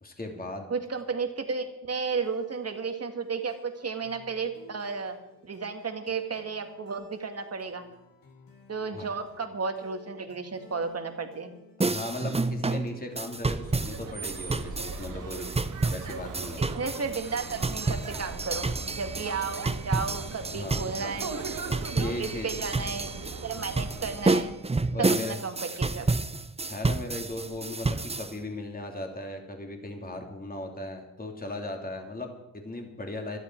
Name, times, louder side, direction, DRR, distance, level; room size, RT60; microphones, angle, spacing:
voice 1, 0.0-0.7 8.9-9.1 11.8-15.5 15.9-16.6 20.5-20.8 22.0-22.6 24.9-25.4 26.7-33.4, left 2 dB, 25° left, 2 dB, 3.0 m, -37 dB
voice 2, 0.7-5.2 5.4-7.9 8.7-11.5 16.6-21.4 21.9-24.6 25.0-26.1, right 5 dB, 45° right, 6 dB, 2.1 m, -33 dB
sound 1, 2.2-15.6, left 5 dB, 65° left, 2.8 m, -55 dB
sound 2, 11.8-28.3, right 3 dB, 15° right, 0.8 m, -30 dB
sound 3, 13.5-24.6, right 5 dB, 60° right, 1.8 m, -40 dB
18.0 x 12.0 x 4.7 m, 0.90 s
cardioid pair, 75°, 36 cm